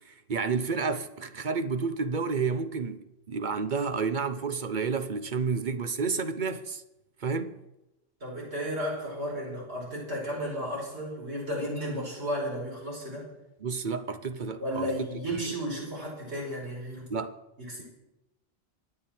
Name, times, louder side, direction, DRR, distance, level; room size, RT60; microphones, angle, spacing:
voice 1, 0.1-6.8 7.2-7.6 13.6-15.1 17.1-17.3, right 5 dB, 50° right, 1.0 m, -30 dB
voice 2, 8.2-13.3 14.6-17.1 17.6-17.8, equal, 90° right, 5.8 m, -33 dB
25.5 x 9.0 x 4.5 m
omnidirectional pair, 1.1 m